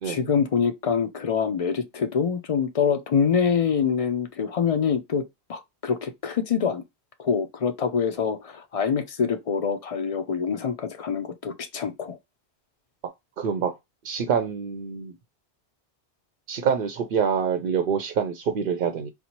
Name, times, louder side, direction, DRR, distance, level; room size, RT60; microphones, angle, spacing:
voice 1, 0.0-5.2 5.5-6.8 7.2-12.2, left 6 dB, 50° left, 0.4 m, -25 dB
voice 2, 13.4-13.7 14.0-15.1 16.5-19.1, right 7 dB, 60° right, 0.6 m, -26 dB
4.2 x 2.1 x 2.9 m
omnidirectional pair, 1.1 m